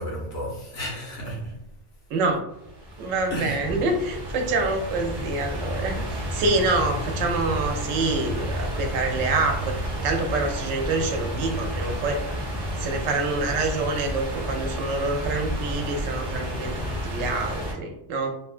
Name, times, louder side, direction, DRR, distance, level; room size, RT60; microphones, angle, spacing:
voice 1, 0.0-1.6 3.3-3.7, equal, 60° left, 1.0 m, -32 dB
voice 2, 2.1-2.4 3.0-9.7 10.0-12.2 12.8-18.3, right 3 dB, 90° right, 1.0 m, -26 dB
sound 1, 2.6-17.7, equal, 35° right, 0.4 m, -31 dB
2.9 x 2.2 x 2.4 m
omnidirectional pair, 1.3 m